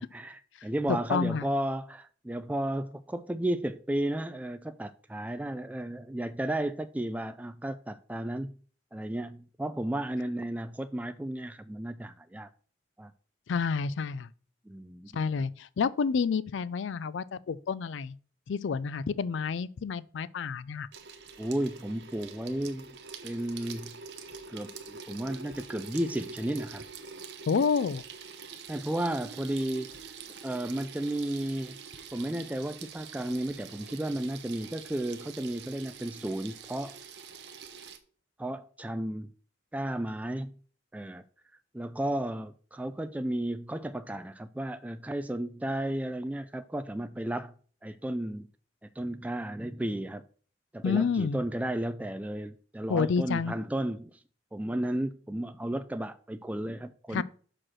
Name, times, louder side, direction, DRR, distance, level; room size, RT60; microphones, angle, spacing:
voice 1, 0.0-8.5 8.9-12.5 13.0-13.1 14.7-15.3 21.4-22.9 23.2-24.0 24.5-26.8 28.7-30.1 30.4-31.8 32.1-37.0 38.4-39.3 39.7-40.5 40.9-41.2 41.7-47.5 47.8-48.5 48.8-50.2 50.7-54.2 54.5-57.2, right 1 dB, 10° right, 0.3 m, -33 dB
voice 2, 1.1-1.4 13.5-14.3 15.1-18.1 18.5-20.9 27.5-28.0 50.8-51.4 52.9-53.6 57.1-57.2, left 5 dB, 80° left, 0.4 m, -29 dB
Water tap faucet / Sink (filling or washing), 20.9-38.0, right 5 dB, 65° right, 0.9 m, -45 dB
5.8 x 5.0 x 6.2 m
head